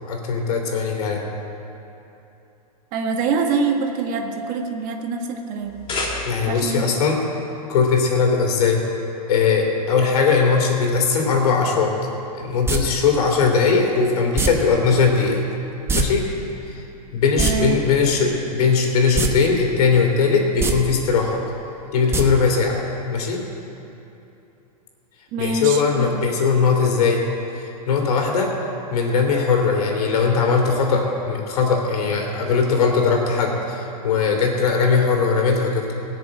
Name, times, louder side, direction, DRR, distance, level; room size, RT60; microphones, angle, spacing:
voice 1, 0.1-1.2 6.3-7.2 7.7-8.8 9.3-11.9 12.3-15.4 15.9-16.2 16.6-16.8 17.1-21.4 21.9-22.8 23.1-23.4 25.4-27.3 27.5-28.5 28.9-35.9, left 5 dB, 70° left, 1 dB, 3.1 m, -19 dB
voice 2, 2.9-5.8 6.5-6.9 17.4-17.8 25.3-26.2, right 4 dB, 40° right, 3 dB, 1.6 m, -25 dB
sound 1, 5.6-6.7, left 2 dB, 25° left, 3.2 m, -29 dB
sound 2, 12.7-12.8 14.4-14.5 15.9-16.1 16.3-16.4 17.2-17.5 19.1-19.3 19.7-19.8 20.5-20.7 22.1-22.2 22.6-22.7, right 4 dB, 10° right, 1.1 m, -21 dB
17.5 x 6.8 x 8.9 m, 2.9 s
hypercardioid pair, 125°, 20 cm